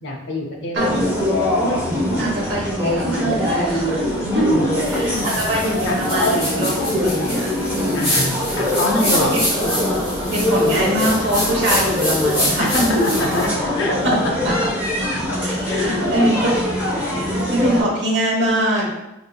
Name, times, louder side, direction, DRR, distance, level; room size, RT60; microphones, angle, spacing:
voice 1, 0.0-1.0 4.2-4.7 5.0-5.3 5.9-6.0 7.9-9.3 12.6-13.0 13.3-13.5 13.8-14.0 15.7-16.0, left 1 dB, 55° left, 0 dB, 0.7 m, -25 dB
sound 1, 0.7-17.8, left 1 dB, 10° right, 0.8 m, -22 dB
voice 2, 2.2-4.1 4.3-4.5 4.9-8.3 9.3-9.7 10.0-13.2 14.0-14.2 14.4-14.6 15.4-16.5 17.1-19.0, right 1 dB, 55° right, -3 dB, 1.0 m, -23 dB
sound 2, 4.8-13.5, equal, 25° left, 1.2 m, -26 dB
4.8 x 2.6 x 2.2 m, 0.91 s
head